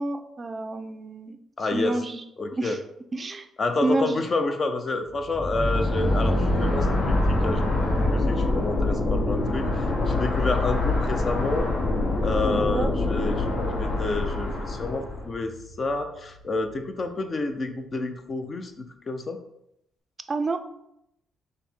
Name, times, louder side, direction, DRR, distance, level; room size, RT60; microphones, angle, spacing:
voice 1, 0.0-1.4 1.7-2.2 2.6-2.8 3.1-3.5 3.8-4.2 12.5-12.9 20.3-20.6, right 2 dB, 35° right, 8 dB, 0.4 m, -28 dB
voice 2, 1.6-2.0 2.4-2.8 3.6-11.7 12.2-13.5 13.8-19.4, left 3 dB, 40° left, 7 dB, 0.5 m, -29 dB
sound 1, 5.1-16.7, equal, 15° left, 1.4 m, -30 dB
sound 2, 5.5-15.3, left 2 dB, 60° left, 0.9 m, -26 dB
5.5 x 2.1 x 4.3 m, 0.80 s
cardioid pair, 90°, 0 cm